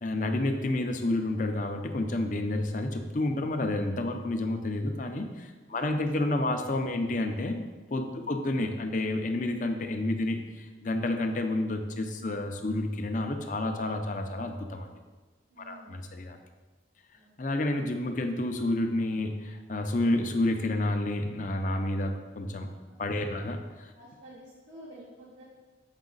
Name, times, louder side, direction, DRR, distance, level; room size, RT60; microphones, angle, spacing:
voice 1, 0.0-14.9 15.6-16.4 17.4-22.7 23.0-23.6, left 1 dB, 45° left, 5 dB, 0.6 m, -30 dB
voice 2, 5.6-6.5 8.1-8.3 15.5-16.1 17.1-17.7 22.8-23.5 23.9-25.4, right 1 dB, 85° right, -10 dB, 2.1 m, -52 dB
7.3 x 5.5 x 4.0 m, 1.3 s
head